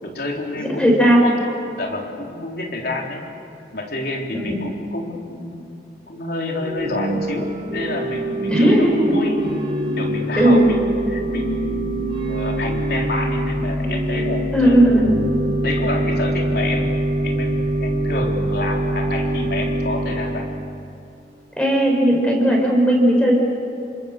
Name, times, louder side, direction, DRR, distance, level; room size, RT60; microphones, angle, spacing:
voice 1, 0.0-3.2 3.7-5.8 6.1-9.5 10.0-15.2 15.6-20.5, left 2 dB, 55° left, 0 dB, 3.9 m, -29 dB
voice 2, 0.5-1.2 4.3-4.5 8.5-9.2 10.4-10.7 14.5-15.2 21.6-23.3, right 1 dB, 5° left, -1 dB, 5.6 m, -16 dB
Organ / Church bell, 6.6-20.7, right 1 dB, 30° right, 3.3 m, -24 dB
29.0 x 25.5 x 6.7 m, 2.8 s
head